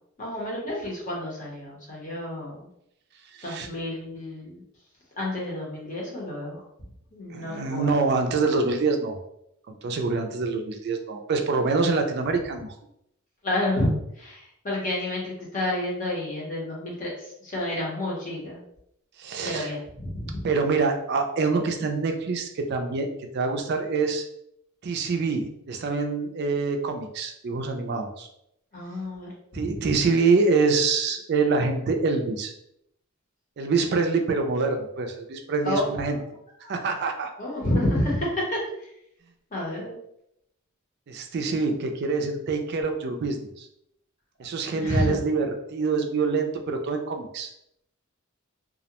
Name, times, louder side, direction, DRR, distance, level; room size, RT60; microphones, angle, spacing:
voice 1, 0.2-2.7 3.4-4.6 5.2-6.6 7.1-8.0 13.4-18.6 19.4-20.4 28.7-29.9 35.6-35.9 36.6-36.8 37.4-38.9 39.5-40.0 44.7-45.2, left 1 dB, 35° left, -4 dB, 0.8 m, -29 dB
voice 2, 3.3-3.7 7.3-9.2 9.7-12.8 19.2-19.7 20.4-24.2 24.8-28.3 29.5-32.5 33.6-36.2 36.7-37.3 41.1-43.7 44.4-47.5, right 4 dB, 50° right, 5 dB, 0.3 m, -25 dB
2.3 x 2.1 x 2.8 m, 0.77 s
head